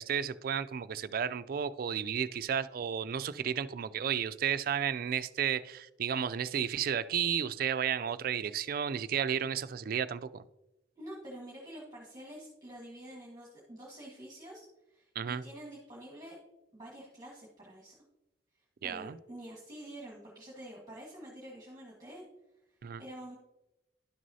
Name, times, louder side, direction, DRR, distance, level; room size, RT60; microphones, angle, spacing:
voice 1, 0.0-10.4 15.2-15.4 18.8-19.2 22.8-23.0, right 8 dB, 50° right, 14 dB, 0.3 m, -33 dB
voice 2, 10.9-16.4 16.7-17.9 18.8-22.2 23.0-23.4, right 1 dB, 20° right, -4 dB, 1.5 m, -47 dB
11.5 x 6.2 x 2.7 m, 0.92 s
head